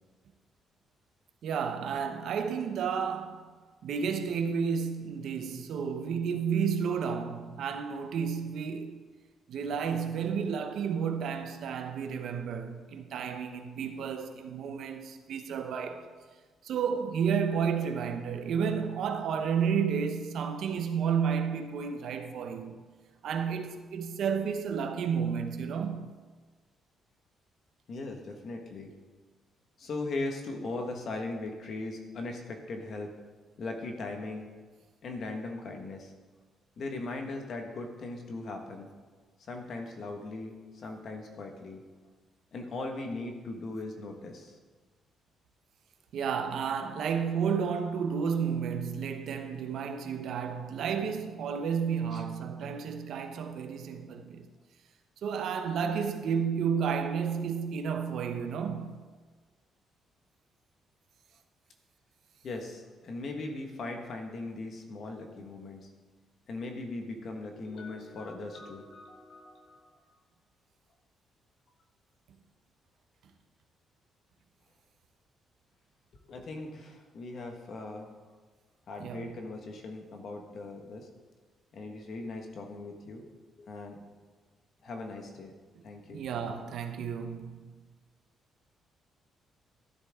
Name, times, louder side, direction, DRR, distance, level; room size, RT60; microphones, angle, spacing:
voice 1, 1.4-3.5 3.8-9.0 9.5-16.1 16.6-22.8 23.2-26.1 46.1-54.5 55.2-59.0 79.0-79.3 86.1-87.5, right 6 dB, 65° right, 0.9 m, -31 dB
voice 2, 27.9-28.9 29.8-33.1 33.6-34.5 35.0-36.1 36.8-38.9 39.5-41.8 42.5-44.6 52.1-52.2 62.4-65.9 66.5-70.1 76.3-78.1 78.9-81.1 81.7-83.3 83.6-84.0 84.8-85.5 85.8-86.2, left 2 dB, 45° left, 1.5 m, -39 dB
12.5 x 11.0 x 3.7 m
cardioid pair, 160°, 0 cm